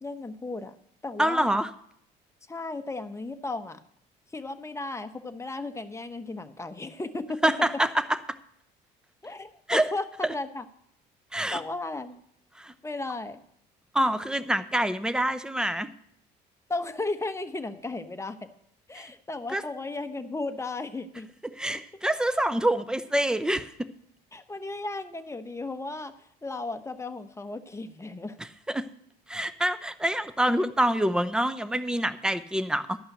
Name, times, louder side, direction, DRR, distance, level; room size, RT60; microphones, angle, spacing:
voice 1, 0.0-0.7 1.0-1.5 2.5-3.8 4.3-7.4 9.2-10.6 11.5-12.2 12.8-13.4 16.7-18.5 18.9-21.3 24.3-26.1 26.4-28.4, left 2 dB, 15° left, 8 dB, 1.0 m, -35 dB
voice 2, 1.2-1.7 7.4-8.2 9.7-9.9 10.2-10.3 11.3-11.6 12.6-12.7 13.9-15.9 18.9-19.1 19.5-19.6 21.6-23.9 28.4-28.9 29.3-33.0, right 1 dB, 5° right, 13 dB, 0.7 m, -26 dB
12.0 x 5.6 x 7.9 m, 0.69 s
supercardioid pair, 75°, 20 cm